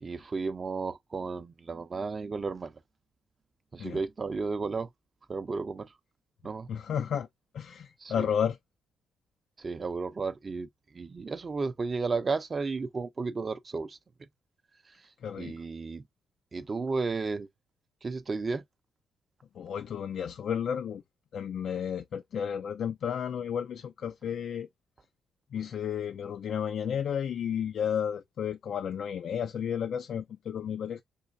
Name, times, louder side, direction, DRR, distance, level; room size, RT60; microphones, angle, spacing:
voice 1, 0.0-2.7 3.7-4.9 5.3-5.9 6.4-6.7 8.0-8.3 9.6-10.7 10.9-14.0 15.4-16.0 16.5-17.5 18.0-18.6, right 4 dB, 30° right, 0.5 m, -33 dB
voice 2, 6.7-7.3 7.5-8.6 15.2-15.5 19.6-21.0 21.3-24.7 25.5-31.0, left 8 dB, 60° left, 0.3 m, -32 dB
3.3 x 3.1 x 2.5 m
cardioid pair, 100°, 0 cm